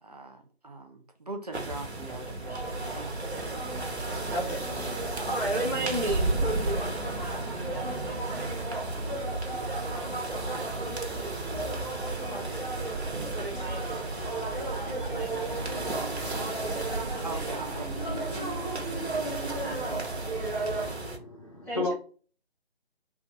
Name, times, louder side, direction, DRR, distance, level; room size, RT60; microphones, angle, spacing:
voice 1, 0.0-3.3 17.2-18.4, right 2 dB, 40° right, 0.6 m, -41 dB
sound 1, 1.5-21.2, right 2 dB, 80° right, 1.1 m, -36 dB
sound 2, 2.4-20.9, right 2 dB, 20° right, 1.4 m, -34 dB
voice 2, 4.3-4.7 5.0-9.0 9.5-11.4 12.2-12.8 13.3-14.1 14.7-17.4 19.6-20.0 21.6-21.9, right 1 dB, 5° left, 1.0 m, -37 dB
voice 3, 20.3-21.9, left 2 dB, 30° left, 0.5 m, -35 dB
3.4 x 2.7 x 3.6 m
figure-of-eight pair, 155°, 32 cm